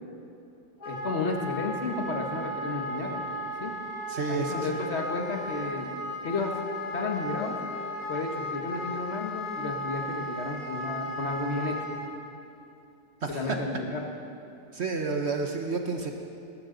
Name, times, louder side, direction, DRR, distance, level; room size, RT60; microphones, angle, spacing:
Wind instrument woodwind instrument, 0.8-12.1, equal, 55° left, 2.1 m, -35 dB
voice 1, 0.8-3.2 3.6-3.7 4.3-5.9 6.2-6.5 6.9-7.5 8.1-11.9 13.3-14.0, left 3 dB, 40° left, 2 dB, 1.5 m, -32 dB
voice 2, 4.1-4.8 13.2-13.6 14.7-16.1, right 4 dB, 50° right, 3 dB, 0.9 m, -30 dB
19.5 x 12.5 x 3.9 m, 2.7 s
omnidirectional pair, 2.0 m